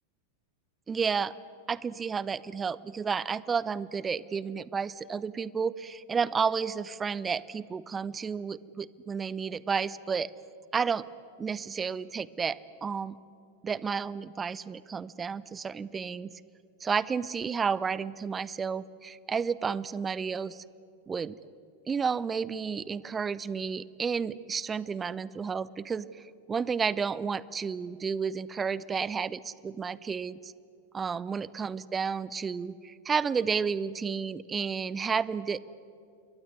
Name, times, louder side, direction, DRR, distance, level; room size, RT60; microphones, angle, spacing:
voice 1, 0.9-1.3 1.7-10.3 10.7-11.0 11.4-13.1 13.6-16.3 16.8-20.6 21.1-21.4 21.9-26.2 26.5-30.5 30.9-35.6, right 6 dB, 20° right, 19 dB, 0.7 m, -31 dB
28.0 x 22.0 x 9.8 m, 2.5 s
figure-of-eight pair, 90°, 0 cm